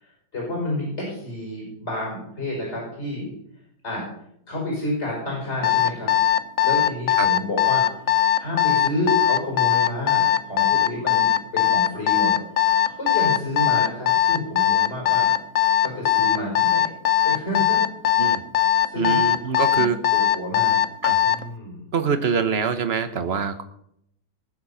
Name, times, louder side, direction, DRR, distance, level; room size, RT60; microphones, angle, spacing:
voice 1, 0.0-3.3 3.8-4.0 4.5-6.1 6.6-7.8 8.4-12.3 12.6-15.3 15.8-16.9 17.2-17.8 18.9-19.8 20.1-20.8 21.2-21.8, left 1 dB, 45° left, -3 dB, 5.8 m, -30 dB
Alarm, 5.6-21.4, left 11 dB, 60° left, 1.1 m, -19 dB
voice 2, 19.0-20.0 21.0-21.2 21.9-23.6, right 6 dB, 45° right, 9 dB, 1.2 m, -24 dB
19.5 x 7.5 x 5.7 m, 0.72 s
omnidirectional pair, 1.7 m